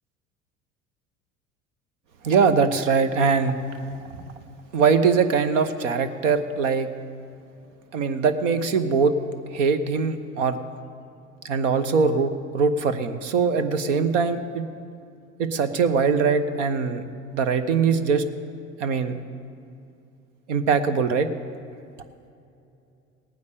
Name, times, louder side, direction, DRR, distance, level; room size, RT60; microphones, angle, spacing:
voice 1, 2.2-3.6 4.7-6.9 7.9-9.1 9.5-10.6 11.4-14.6 15.4-17.1 17.3-18.2 18.8-19.2 20.5-21.3, right 5 dB, 80° right, 11 dB, 0.9 m, -22 dB
17.5 x 9.5 x 6.8 m, 2.6 s
hypercardioid pair, 65°, 37 cm